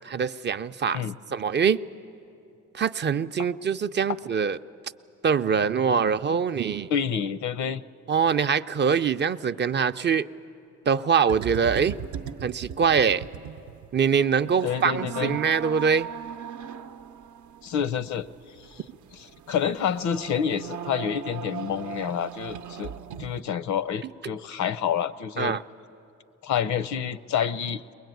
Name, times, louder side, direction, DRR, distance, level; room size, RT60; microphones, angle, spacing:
voice 1, 0.1-1.0 1.3-1.8 2.7-4.6 5.2-6.9 8.1-10.3 10.9-12.0 12.4-13.3 13.9-16.1 25.4-25.6, right 6 dB, 35° right, 10 dB, 0.5 m, -23 dB
voice 2, 6.9-7.8 14.6-15.4 17.6-18.3 18.7-18.8 19.1-22.9 23.2-25.6 26.4-27.8, left 8 dB, 70° left, 14 dB, 0.7 m, -28 dB
sound 1, 11.3-23.4, right 8 dB, 75° right, 0.7 m, -39 dB
22.0 x 21.0 x 9.2 m, 2.7 s
cardioid pair, 90°, 30 cm